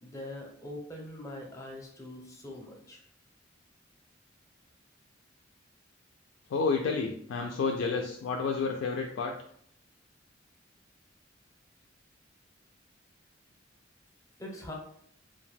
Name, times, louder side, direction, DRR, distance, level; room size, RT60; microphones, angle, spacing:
voice 1, 0.0-3.0 14.4-14.7, left 1 dB, 15° left, 1 dB, 0.6 m, -43 dB
voice 2, 6.5-9.3, left 4 dB, 85° left, 2 dB, 0.3 m, -30 dB
2.4 x 2.1 x 3.1 m, 0.65 s
head